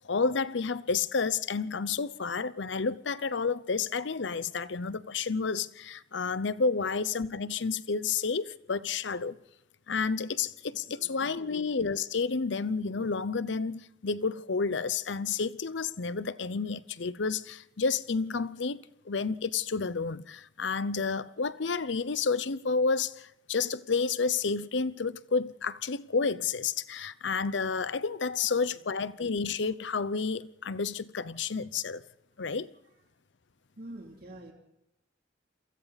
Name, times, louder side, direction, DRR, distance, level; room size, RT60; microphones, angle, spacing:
voice 1, 0.0-9.4 9.9-32.0 32.4-32.7, left 5 dB, 70° left, 0.7 m, -30 dB
voice 2, 10.8-11.6 28.7-28.8 31.3-31.5 33.8-34.5, right 1 dB, 55° right, 3.0 m, -47 dB
28.5 x 23.0 x 4.1 m
head